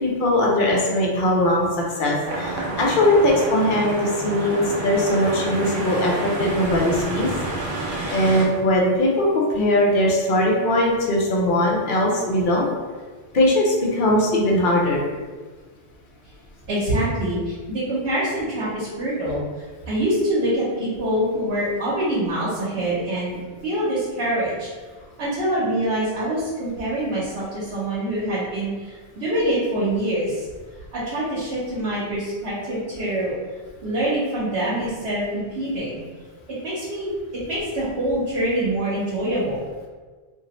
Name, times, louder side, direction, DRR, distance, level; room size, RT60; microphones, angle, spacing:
voice 1, 0.0-1.7 2.0-7.3 8.1-12.6 13.3-15.0, left 1 dB, 60° left, -2 dB, 0.8 m, -20 dB
sound 1, 2.3-8.5, right 2 dB, 60° right, 0.8 m, -29 dB
voice 2, 16.7-19.4 19.9-24.7 25.2-30.5 30.9-33.3 33.8-36.0 36.6-39.7, right 1 dB, 80° right, -9 dB, 1.1 m, -25 dB
2.9 x 2.6 x 2.9 m, 1.4 s
omnidirectional pair, 1.1 m